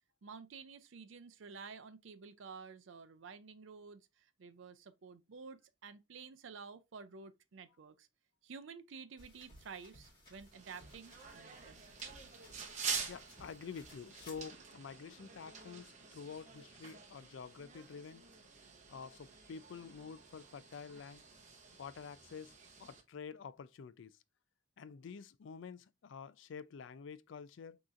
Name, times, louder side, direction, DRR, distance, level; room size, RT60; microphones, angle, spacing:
voice 1, 0.2-8.1 8.4-11.8, right 5 dB, 75° right, 0.5 m, -51 dB
sound 1, 9.2-14.5, left 1 dB, 25° left, 1.8 m, -59 dB
sound 2, 10.5-23.0, right 6 dB, 35° right, 0.9 m, -47 dB
voice 2, 13.1-18.2 18.9-21.2 21.8-22.5 22.8-24.1 24.8-27.8, left 6 dB, 70° left, 0.4 m, -48 dB
6.2 x 2.9 x 2.5 m
head